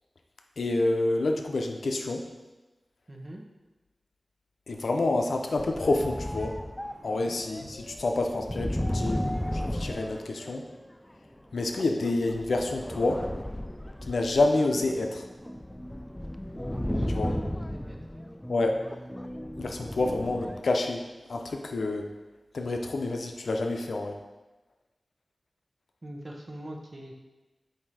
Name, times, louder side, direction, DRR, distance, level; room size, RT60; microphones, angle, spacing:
voice 1, 0.6-2.3 4.7-6.6 7.0-9.2 9.5-10.6 11.5-13.3 14.1-15.2 17.1-17.3 18.5-18.8 19.6-21.0 21.3-22.1 22.5-24.1, left 2 dB, 90° left, 4 dB, 0.5 m, -28 dB
voice 2, 3.1-3.4 7.2-7.3 16.8-18.0 26.0-27.1, right 1 dB, 45° right, 1 dB, 0.8 m, -43 dB
sound 1, 5.6-10.9 11.7-20.6, equal, 10° left, 0.3 m, -35 dB
7.2 x 2.7 x 4.8 m, 1.2 s
wide cardioid pair, 60°, 0 cm